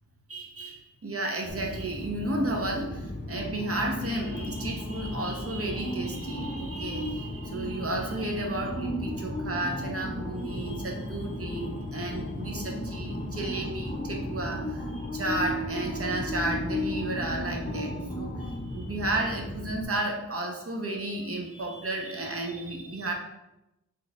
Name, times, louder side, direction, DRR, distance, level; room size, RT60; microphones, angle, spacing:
voice 1, 0.3-23.1, right 2 dB, 50° right, 1 dB, 0.7 m, -33 dB
sound 1, 1.5-19.8, left 1 dB, 30° left, 0.7 m, -34 dB
4.4 x 3.1 x 2.3 m, 0.92 s
wide cardioid pair, 55°, 30 cm